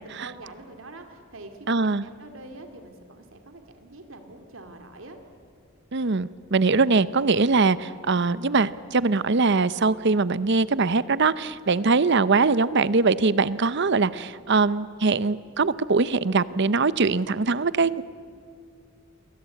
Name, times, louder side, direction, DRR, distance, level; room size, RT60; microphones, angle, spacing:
voice 1, 0.0-5.2 11.7-12.0, right 2 dB, 75° right, 6 dB, 2.7 m, -45 dB
voice 2, 1.7-2.0 5.9-18.0, right 4 dB, 60° right, 17 dB, 0.8 m, -22 dB
29.0 x 22.5 x 8.6 m, 2.3 s
head